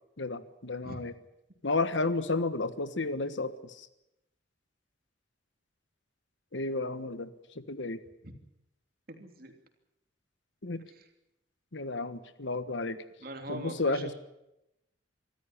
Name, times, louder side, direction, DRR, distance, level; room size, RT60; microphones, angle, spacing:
voice 1, 0.2-1.1 1.6-3.9 6.5-7.3 7.5-8.0 10.6-10.8 11.7-13.0 13.5-14.1, left 3 dB, 75° left, 12 dB, 1.3 m, -32 dB
voice 2, 9.1-9.5 10.9-11.1 13.2-14.1, right 1 dB, 50° right, 5 dB, 3.1 m, -42 dB
25.0 x 13.5 x 9.9 m, 0.90 s
head